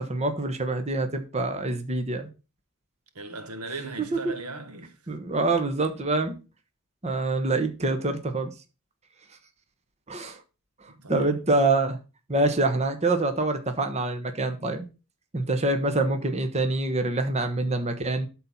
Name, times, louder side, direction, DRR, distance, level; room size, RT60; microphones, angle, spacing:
voice 1, 0.0-2.3 4.2-4.3 5.1-6.3 7.0-8.5 10.1-10.4 11.1-12.0 12.3-14.9 15.3-18.3, right 2 dB, 30° right, 1.2 m, -25 dB
voice 2, 3.1-5.0 10.9-11.7, right 3 dB, 85° right, 1.6 m, -38 dB
12.5 x 4.4 x 5.5 m
head